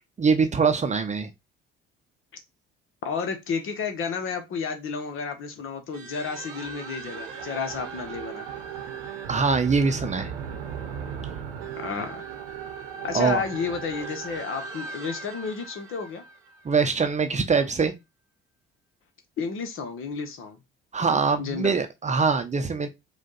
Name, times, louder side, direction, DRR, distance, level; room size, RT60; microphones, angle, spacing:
voice 1, 0.2-1.3 9.3-10.3 13.1-13.4 16.6-17.9 20.9-22.9, right 5 dB, 25° right, 0.8 m, -23 dB
voice 2, 3.0-8.5 11.8-12.2 13.0-16.2 19.4-20.6 21.4-21.8, left 5 dB, 45° left, 1.2 m, -31 dB
sound 1, 5.9-17.2, right 6 dB, 65° right, 0.8 m, -37 dB
5.0 x 2.5 x 3.9 m
figure-of-eight pair, 50°, 29 cm